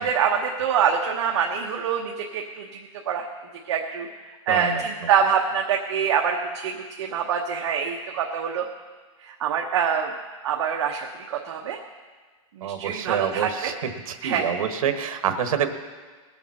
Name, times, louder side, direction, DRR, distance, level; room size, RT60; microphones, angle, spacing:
voice 1, 0.0-2.7 3.1-3.3 3.7-4.1 4.5-6.4 6.6-8.6 9.2-10.1 10.4-11.8 12.6-13.8 14.2-14.5, right 7 dB, 55° right, 1 dB, 1.0 m, -25 dB
voice 2, 4.5-4.8 12.6-15.7, right 8 dB, 80° right, 7 dB, 1.4 m, -27 dB
19.0 x 7.0 x 5.8 m, 1.4 s
supercardioid pair, 180°, 18 cm